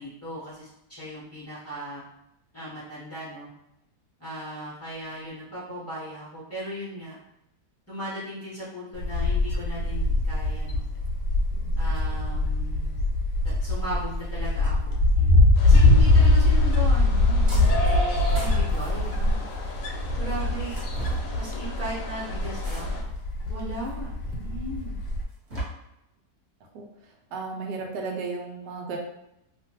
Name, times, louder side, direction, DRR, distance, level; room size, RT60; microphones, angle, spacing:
voice 1, 0.0-2.0 2.5-3.5 4.2-7.1 7.9-10.8 11.8-12.9 13.4-17.8 18.3-19.4 20.2-20.7 21.3-23.0 23.5-25.0, equal, 25° left, -10 dB, 0.3 m, -37 dB
Wind, 8.9-25.2, left 2 dB, 85° left, 1.2 m, -22 dB
sound 1, 15.6-23.0, left 1 dB, 65° left, 0.9 m, -36 dB
sound 2, 17.5-17.9 18.2-19.7 20.6-21.3 22.6-23.2 23.9-24.0 25.1-25.6, right 2 dB, 45° right, 1.2 m, -36 dB
voice 2, 27.3-29.0, right 4 dB, 85° right, 1 dB, 1.2 m, -33 dB
2.8 x 2.4 x 2.8 m, 0.83 s
omnidirectional pair, 1.8 m